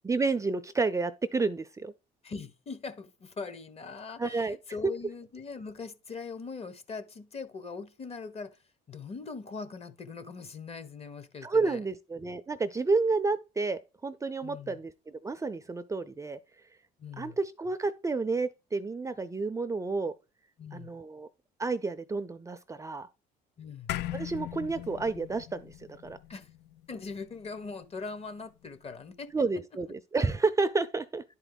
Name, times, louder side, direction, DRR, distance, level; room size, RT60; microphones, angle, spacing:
voice 1, 0.0-1.9 4.2-4.6 11.4-16.4 17.2-20.1 20.7-21.3 21.6-23.1 24.1-26.2 29.3-31.2, right 3 dB, 20° right, 0.5 m, -30 dB
voice 2, 2.2-8.6 8.9-11.8 14.4-14.8 17.0-17.4 20.6-20.9 23.6-23.9 26.3-26.5 26.9-29.3, left 4 dB, 35° left, 1.2 m, -41 dB
sound 1, 23.9-28.5, left 14 dB, 80° left, 0.4 m, -40 dB
10.5 x 4.5 x 3.9 m
cardioid pair, 110°, 17 cm